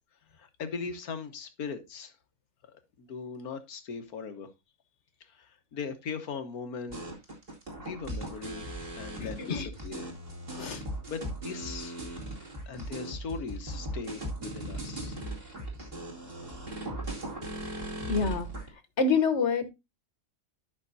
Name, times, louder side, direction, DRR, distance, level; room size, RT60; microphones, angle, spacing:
voice 1, 0.4-2.1 3.0-4.5 5.3-7.1 7.8-8.6 8.9-10.0 11.1-12.0 12.7-15.2, left 5 dB, 75° left, 1.7 m, -39 dB
sound 1, 6.9-18.7, right 1 dB, 40° right, 2.7 m, -38 dB
voice 2, 9.2-9.7 10.6-10.8 18.1-18.5 19.0-19.7, left 4 dB, 50° left, 1.6 m, -27 dB
12.5 x 6.0 x 2.7 m
omnidirectional pair, 1.6 m